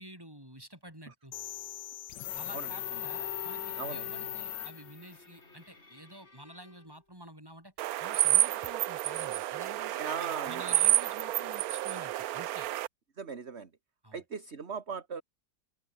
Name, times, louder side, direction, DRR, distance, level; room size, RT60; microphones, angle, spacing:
voice 1, 0.0-1.3 2.3-7.7 8.0-10.0 10.4-12.7 14.0-14.2, equal, 10° right, 7.6 m, -49 dB
sound 1, 1.3-5.2, left 12 dB, 85° left, 1.5 m, -39 dB
Bowed string instrument, 2.5-7.0, left 2 dB, 40° left, 4.4 m, -49 dB
sound 2, 7.8-12.9, right 14 dB, 70° right, 1.0 m, -29 dB
voice 2, 10.0-10.6 13.2-13.7 14.1-15.2, right 6 dB, 40° right, 2.0 m, -38 dB
open air
omnidirectional pair, 1.9 m